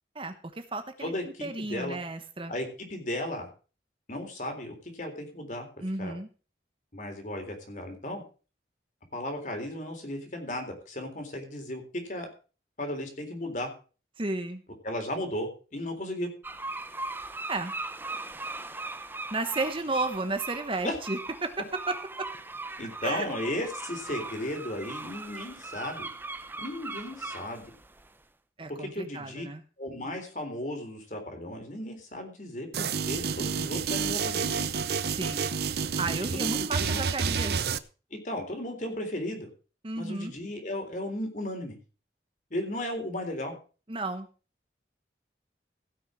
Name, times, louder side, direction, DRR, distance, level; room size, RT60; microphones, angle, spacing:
voice 1, 0.1-1.1 1.4-2.5 5.8-6.3 14.2-14.6 17.5-17.7 19.3-21.5 21.9-22.0 23.0-23.3 28.6-29.6 35.1-35.5 36.0-37.6 39.8-40.3 43.9-44.3, right 2 dB, 30° right, 8 dB, 1.1 m, -33 dB
voice 2, 1.0-2.0 2.5-3.5 4.1-5.7 6.0-6.2 6.9-8.2 9.1-12.3 12.8-13.7 14.8-16.3 20.8-21.0 22.8-26.1 26.6-27.7 28.7-29.5 29.8-34.7 36.3-37.0 38.1-39.5 40.0-41.8 42.5-43.5, left 1 dB, 45° left, 4 dB, 3.7 m, -35 dB
sound 1, 16.4-28.1, right 3 dB, 10° right, 0.8 m, -39 dB
sound 2, 32.7-37.8, right 6 dB, 65° right, 0.7 m, -29 dB
16.5 x 6.3 x 6.3 m, 0.36 s
head